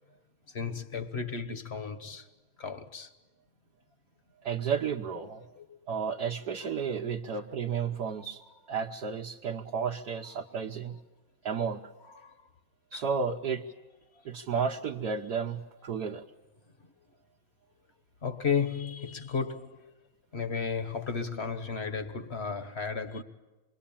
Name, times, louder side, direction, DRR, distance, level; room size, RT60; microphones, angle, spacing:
voice 1, 0.5-2.3 2.6-3.1 5.6-5.8 6.4-6.8 7.3-7.4 8.2-8.5 10.2-10.4 12.0-12.3 12.9-13.1 15.9-16.0 16.8-16.9 18.2-19.9 20.3-23.2, left 5 dB, 35° left, 1.4 m, -34 dB
voice 2, 4.4-5.4 5.9-8.4 8.7-11.0 11.4-11.8 12.9-13.6 14.2-16.2, right 6 dB, 55° right, 1.4 m, -32 dB
27.5 x 22.0 x 8.8 m
omnidirectional pair, 2.2 m